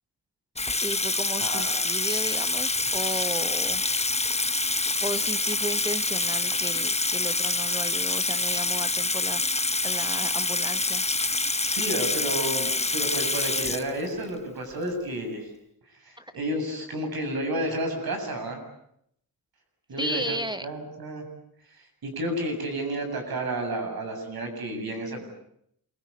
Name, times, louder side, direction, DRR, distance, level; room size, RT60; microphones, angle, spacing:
Water tap faucet / Sink (filling or washing), 0.6-14.3, left 3 dB, 20° left, 1.0 m, -26 dB
voice 1, 0.8-3.8 5.0-9.4 9.8-11.0 16.2-16.3 20.0-20.7, equal, 10° right, 10 dB, 1.0 m, -34 dB
voice 2, 1.4-1.7 11.7-15.5 16.0-18.6 19.9-21.2 22.0-25.2, right 1 dB, 75° right, 4 dB, 7.7 m, -31 dB
28.0 x 23.5 x 8.5 m, 0.74 s
wide cardioid pair, 115°, 36 cm